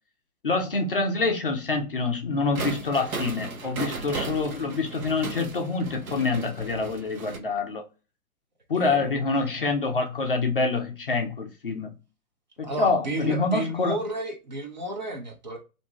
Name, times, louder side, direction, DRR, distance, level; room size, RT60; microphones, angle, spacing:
voice 1, 0.4-7.8 8.7-11.9 12.6-14.0, left 3 dB, 40° left, 0.4 m, -26 dB
sound 1, 2.5-7.4, right 3 dB, 65° right, 0.8 m, -35 dB
voice 2, 8.7-9.2 12.6-15.6, right 1 dB, 30° right, 0.5 m, -32 dB
2.5 x 2.2 x 3.0 m
figure-of-eight pair, 125°, 45 cm